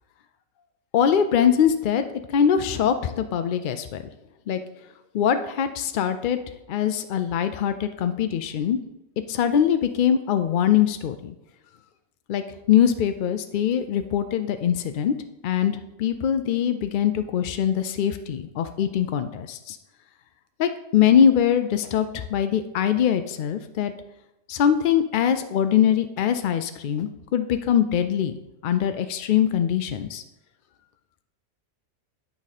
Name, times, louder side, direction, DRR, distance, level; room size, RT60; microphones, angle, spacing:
voice 1, 0.9-4.0 4.5-4.6 5.1-6.4 6.7-8.8 9.3-11.3 12.3-15.1 15.4-15.7 16.0-19.8 20.6-23.9 24.5-30.2, left 9 dB, 70° left, 9 dB, 0.4 m, -22 dB
8.8 x 5.5 x 4.1 m, 0.92 s
omnidirectional pair, 1.4 m